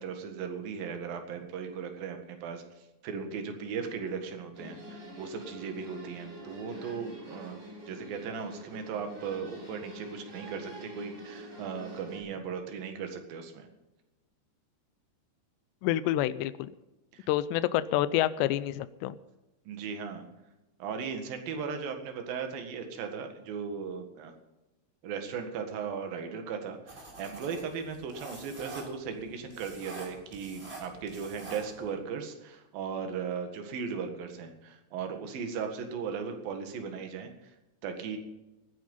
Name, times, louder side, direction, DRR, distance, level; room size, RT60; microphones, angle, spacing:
voice 1, 0.0-2.6 3.0-7.6 7.9-13.7 17.1-17.3 19.7-20.3 20.8-24.3 25.0-37.5 37.8-38.2, right 6 dB, 60° right, 5 dB, 3.4 m, -37 dB
sound 1, 4.5-12.2, equal, 35° right, 7.7 m, -46 dB
voice 2, 15.8-16.7 17.3-19.2, left 13 dB, 85° left, 15 dB, 2.8 m, -28 dB
sound 2, 26.9-31.9, right 2 dB, 15° right, 3.2 m, -47 dB
18.0 x 10.0 x 5.5 m, 1.0 s
omnidirectional pair, 4.9 m